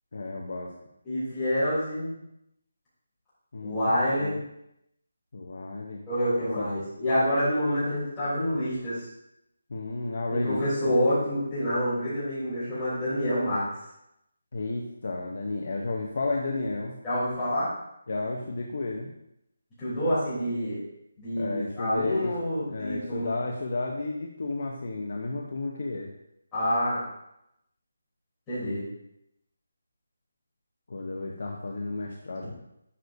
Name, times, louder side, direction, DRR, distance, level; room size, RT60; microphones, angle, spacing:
voice 1, 0.1-0.7 3.5-4.4 5.3-6.0 6.6-6.7 9.7-11.0 14.5-16.9 18.1-19.1 21.3-22.3 22.7-26.1 30.9-32.5, left 3 dB, 40° left, 0 dB, 0.8 m, -32 dB
voice 2, 1.0-2.1 3.6-4.4 6.1-9.0 10.3-13.7 17.0-17.7 19.8-20.8 21.2-23.3 26.5-27.0 28.5-28.8, equal, 5° left, -15 dB, 3.4 m, -27 dB
11.0 x 6.5 x 2.7 m, 0.81 s
hypercardioid pair, 180°, 0 cm